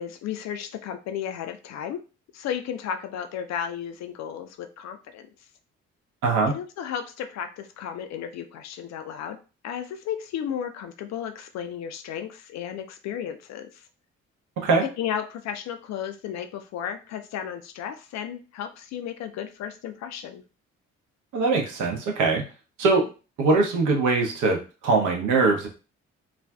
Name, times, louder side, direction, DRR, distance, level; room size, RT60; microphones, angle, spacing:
voice 1, 0.0-2.0 2.3-5.3 6.5-9.4 9.6-13.8 14.8-20.4, left 9 dB, 50° left, 8 dB, 0.4 m, -34 dB
voice 2, 6.2-6.5 14.6-14.8 21.3-22.4 22.8-23.1 23.4-25.7, right 3 dB, 60° right, 1 dB, 0.8 m, -22 dB
2.4 x 2.3 x 2.2 m, 0.33 s
figure-of-eight pair, 40°, 35 cm